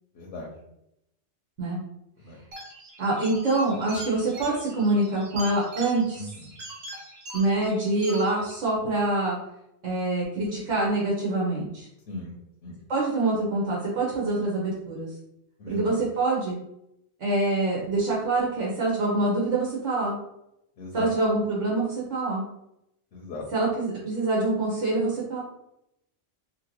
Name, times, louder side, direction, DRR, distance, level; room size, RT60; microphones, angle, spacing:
voice 1, 0.1-0.5 2.2-2.4 6.2-6.5 12.1-12.3 12.6-12.8 15.6-16.0 20.8-21.1 23.1-23.5, left 2 dB, 75° left, -1 dB, 0.9 m, -38 dB
sound 1, 2.5-8.5, right 1 dB, 60° right, 1.0 m, -42 dB
voice 2, 3.0-6.3 7.3-9.4 9.8-11.9 12.9-15.1 15.7-16.5 17.2-20.1 20.9-22.4 23.5-25.4, right 2 dB, 80° right, -5 dB, 1.1 m, -25 dB
2.9 x 2.6 x 3.0 m, 0.83 s
omnidirectional pair, 1.2 m